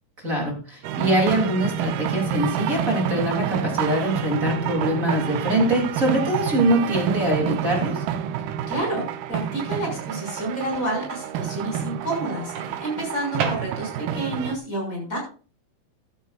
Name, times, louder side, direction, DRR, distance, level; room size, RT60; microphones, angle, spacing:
voice 1, 0.2-8.0, right 1 dB, 20° right, -1 dB, 3.5 m, -23 dB
sound 1, 0.8-14.6, right 9 dB, 80° right, 2.6 m, -29 dB
Microwave oven, 3.8-4.5 6.5-6.7 12.6-14.2, right 5 dB, 60° right, 2.8 m, -33 dB
voice 2, 8.7-15.2, right 1 dB, 20° left, 0 dB, 7.0 m, -29 dB
15.0 x 12.5 x 2.6 m, 0.37 s
omnidirectional pair, 4.2 m